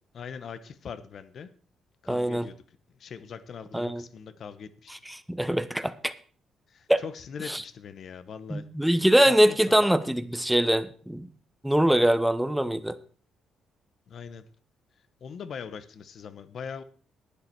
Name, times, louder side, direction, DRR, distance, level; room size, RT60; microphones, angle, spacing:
voice 1, 0.1-1.5 2.0-2.6 3.0-5.2 6.7-8.7 9.3-9.9 14.1-14.4 15.2-16.8, left 6 dB, 60° left, 13 dB, 1.0 m, -41 dB
voice 2, 2.1-2.5 3.7-4.0 5.1-6.1 6.9-7.0 7.5-7.6 8.5-11.3 11.6-13.0, right 1 dB, 5° right, 12 dB, 1.0 m, -23 dB
11.5 x 10.0 x 4.7 m, 0.42 s
cardioid pair, 90°, 0 cm